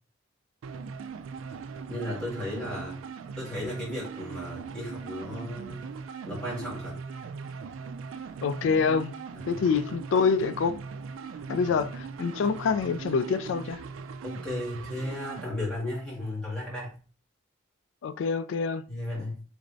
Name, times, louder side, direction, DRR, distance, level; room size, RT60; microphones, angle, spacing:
sound 1, 0.6-15.5, right 5 dB, 85° right, 0.3 m, -40 dB
voice 1, 1.9-3.0 3.3-5.8 6.2-7.0 9.3-9.6 14.2-16.9 18.9-19.4, left 1 dB, 5° left, 1.8 m, -35 dB
voice 2, 8.4-9.1 9.5-10.8 11.5-13.8 18.0-18.8, left 5 dB, 70° left, 0.3 m, -26 dB
3.4 x 3.1 x 2.5 m
head